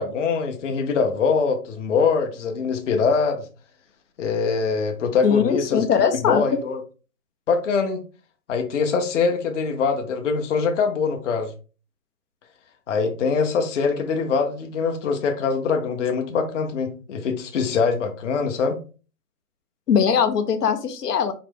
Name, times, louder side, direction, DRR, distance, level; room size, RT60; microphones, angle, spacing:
voice 1, 0.0-3.5 4.2-5.8 6.2-6.8 7.5-8.0 8.5-11.5 12.9-18.8, left 5 dB, 50° left, 5 dB, 0.9 m, -23 dB
voice 2, 5.2-6.4 19.9-21.3, left 7 dB, 85° left, 8 dB, 1.0 m, -20 dB
4.9 x 2.9 x 3.7 m, 0.35 s
hypercardioid pair, 165°, 47 cm